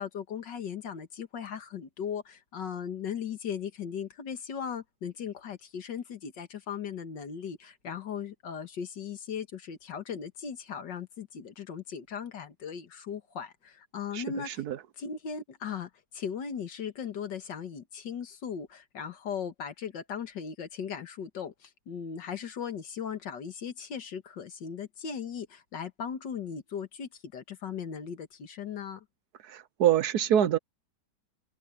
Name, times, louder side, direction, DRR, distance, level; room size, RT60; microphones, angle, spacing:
voice 1, 0.0-14.6 15.0-29.0, left 7 dB, 85° left, 2.2 m, -38 dB
voice 2, 14.1-14.8 29.5-30.6, right 10 dB, 65° right, 1.3 m, -25 dB
omnidirectional pair, 1.9 m